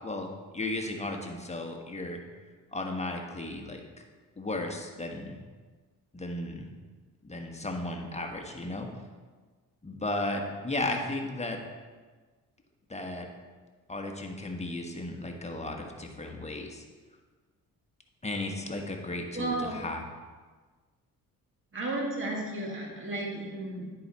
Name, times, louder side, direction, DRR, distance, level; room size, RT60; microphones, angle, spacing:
voice 1, 0.0-2.2 2.7-3.8 4.4-5.4 6.1-6.7 7.2-8.9 9.8-11.6 12.9-13.3 13.9-16.8 18.2-20.0, left 2 dB, 20° left, 2 dB, 1.3 m, -35 dB
voice 2, 19.3-19.8 21.7-23.9, right 2 dB, 35° right, -2 dB, 2.2 m, -33 dB
10.0 x 4.9 x 4.3 m, 1.4 s
supercardioid pair, 70°, 35 cm